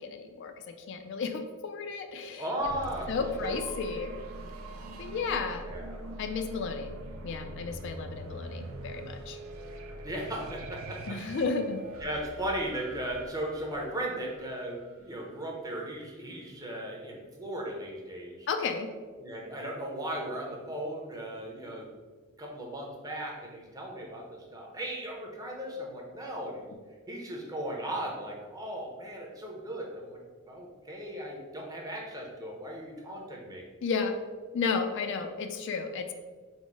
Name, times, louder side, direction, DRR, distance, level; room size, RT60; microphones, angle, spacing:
voice 1, 0.0-2.5 3.1-4.1 5.0-5.6 6.2-6.9 7.2-9.4 11.1-11.8 18.5-18.9 33.8-34.2 34.5-36.1, left 5 dB, 55° left, 6 dB, 0.3 m, -33 dB
voice 2, 2.4-3.1 3.4-3.6 5.6-6.0 10.0-11.2 12.0-18.5 19.2-21.9 22.4-26.7 27.1-30.2 30.5-33.6, right 1 dB, 15° right, -1 dB, 0.7 m, -37 dB
sound 1, 2.6-15.3, right 2 dB, 80° right, 0.5 m, -43 dB
4.2 x 2.1 x 4.5 m, 1.4 s
head